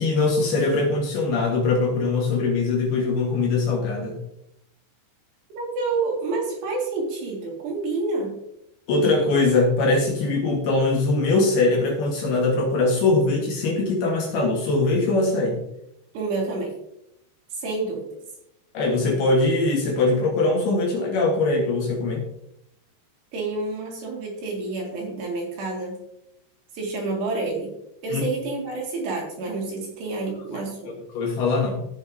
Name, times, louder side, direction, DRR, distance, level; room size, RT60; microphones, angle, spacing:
voice 1, 0.0-4.2 8.9-15.6 18.7-22.2 28.1-28.2 31.1-31.9, left 3 dB, 65° left, 0 dB, 3.0 m, -22 dB
voice 2, 5.5-8.4 16.1-16.7 17.5-18.1 23.3-26.0 26.7-27.7 28.0-31.0, right 3 dB, 65° right, -1 dB, 3.9 m, -28 dB
15.5 x 6.3 x 2.7 m, 0.79 s
omnidirectional pair, 5.5 m